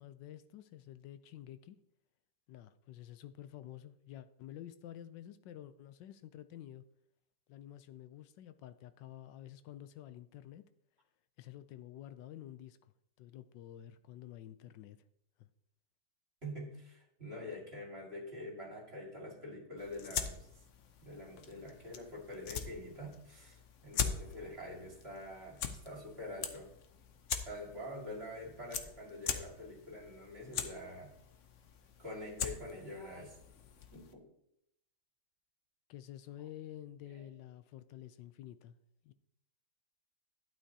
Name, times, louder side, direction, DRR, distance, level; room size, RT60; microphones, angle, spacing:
voice 1, 0.0-1.8 2.5-6.8 7.5-10.7 11.4-12.9 13.2-15.0 15.4-15.5 35.9-38.8 39.0-39.1, left 12 dB, 85° left, 12 dB, 1.2 m, -50 dB
voice 2, 16.4-20.5 21.0-26.7 27.5-31.2 32.0-33.4 33.9-34.3 37.1-37.3, left 1 dB, 35° right, -1 dB, 2.3 m, -46 dB
sound 1, 19.8-34.1, left 7 dB, 55° left, 0.9 m, -43 dB
12.0 x 9.1 x 2.8 m, 0.76 s
omnidirectional pair, 1.9 m